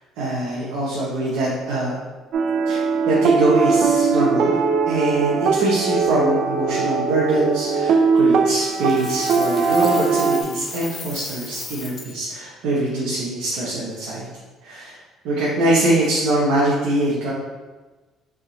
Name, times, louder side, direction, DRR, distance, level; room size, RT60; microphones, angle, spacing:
voice 1, 0.2-1.9 2.7-4.5 4.9-14.3 14.6-15.0 15.2-17.3, right 1 dB, 80° right, -6 dB, 0.9 m, -23 dB
sound 1, 2.3-10.4, right 5 dB, 65° right, 0.4 m, -20 dB
Coin (dropping), 8.7-12.2, left 4 dB, 45° left, 0.6 m, -36 dB
3.6 x 2.8 x 3.9 m, 1.3 s
supercardioid pair, 85°, 0 cm